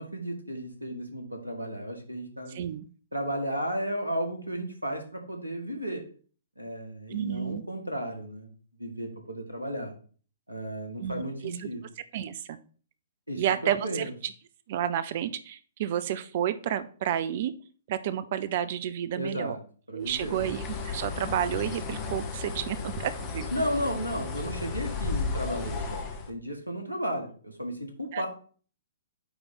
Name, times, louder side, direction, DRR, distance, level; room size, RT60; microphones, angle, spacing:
voice 1, 0.0-2.6 3.1-6.0 6.6-8.5 8.8-9.9 10.5-11.9 13.3-14.1 19.2-19.6 19.9-20.4 23.5-28.3, equal, 90° right, 4 dB, 1.7 m, -34 dB
voice 2, 2.5-2.9 7.1-7.6 11.0-11.7 12.1-12.6 13.4-14.1 14.7-17.5 17.9-19.6 19.9-23.5 28.1-28.3, right 10 dB, 45° right, 14 dB, 0.5 m, -31 dB
Bird, 20.1-26.3, left 4 dB, 25° left, 1.3 m, -34 dB
8.9 x 3.4 x 4.1 m, 0.43 s
figure-of-eight pair, 115°, 0 cm